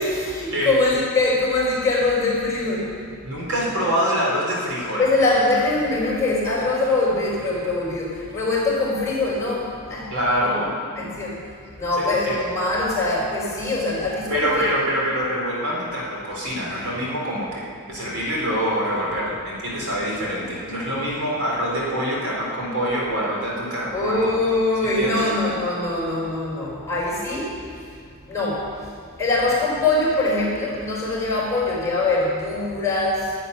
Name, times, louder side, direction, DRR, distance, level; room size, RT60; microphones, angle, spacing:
voice 1, 0.0-2.9 5.0-10.1 10.4-10.5 10.9-11.4 11.8-14.7 23.9-27.6 28.3-28.6 29.2-33.3, left 2 dB, 15° left, -5 dB, 4.8 m, -23 dB
voice 2, 3.2-5.0 10.1-10.7 12.0-12.4 14.3-24.3 24.8-25.3, equal, 75° right, -4 dB, 4.2 m, -25 dB
12.5 x 8.1 x 9.9 m, 2.2 s
head